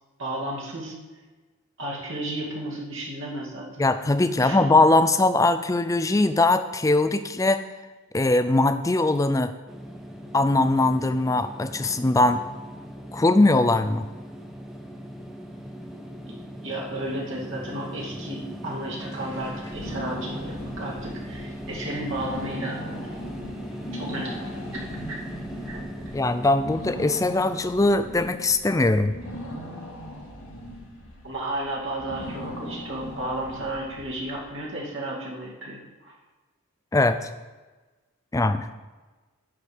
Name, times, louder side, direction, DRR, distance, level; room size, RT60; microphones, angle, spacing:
voice 1, 0.2-1.0 1.8-3.9 4.4-4.7 15.9-16.1 16.6-22.8 23.9-24.6 25.1-25.2 25.6-25.8 31.2-36.1, right 1 dB, 60° right, -3 dB, 2.3 m, -33 dB
voice 2, 3.8-7.6 8.1-9.5 10.3-12.4 13.1-14.1 26.1-29.1 36.9-37.3 38.3-38.7, left 2 dB, 15° left, 10 dB, 0.4 m, -21 dB
sound 1, 9.7-28.3, equal, ahead, 0.7 m, -39 dB
sound 2, 19.1-34.5, equal, 85° left, 2.1 m, -39 dB
9.8 x 4.7 x 7.0 m, 1.2 s
head